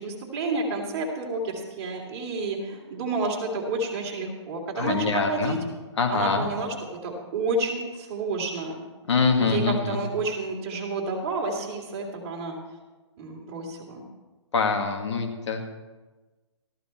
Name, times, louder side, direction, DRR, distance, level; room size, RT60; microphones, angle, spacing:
voice 1, 0.0-5.6 6.1-6.7 7.0-8.8 9.4-12.6 13.2-14.1, right 3 dB, 30° right, -2 dB, 3.1 m, -30 dB
voice 2, 4.8-5.6 6.0-6.5 9.1-10.0 14.5-15.6, left 4 dB, 70° left, 4 dB, 2.1 m, -24 dB
14.0 x 12.5 x 4.4 m, 1.2 s
hypercardioid pair, 160°, 16 cm